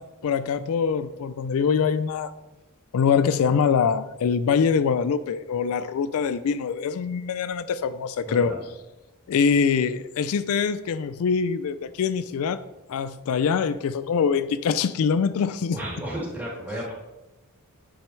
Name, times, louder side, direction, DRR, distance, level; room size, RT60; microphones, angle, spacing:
voice 1, 0.0-2.3 2.9-8.5 9.3-12.6 12.9-15.8, left 6 dB, 70° left, 13 dB, 0.3 m, -24 dB
voice 2, 8.2-8.5 15.7-16.9, equal, 10° right, -6 dB, 3.0 m, -32 dB
10.0 x 6.2 x 3.2 m, 1.0 s
head